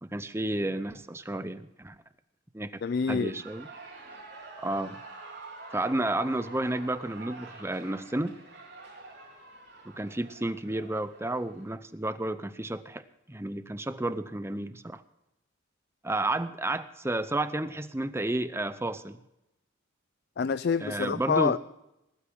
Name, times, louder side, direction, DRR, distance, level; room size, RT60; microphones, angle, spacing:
voice 1, 0.0-2.0 2.5-2.8 3.1-3.7 4.6-5.0 5.7-8.4 9.9-15.0 16.0-19.2 20.8-21.6, right 1 dB, 10° right, 13 dB, 0.6 m, -31 dB
voice 2, 2.8-3.4 20.4-21.6, left 5 dB, 50° left, 15 dB, 0.4 m, -27 dB
Shout / Cheering, 2.8-11.7, right 2 dB, 55° right, 3.8 m, -47 dB
19.5 x 12.5 x 3.6 m, 0.88 s
head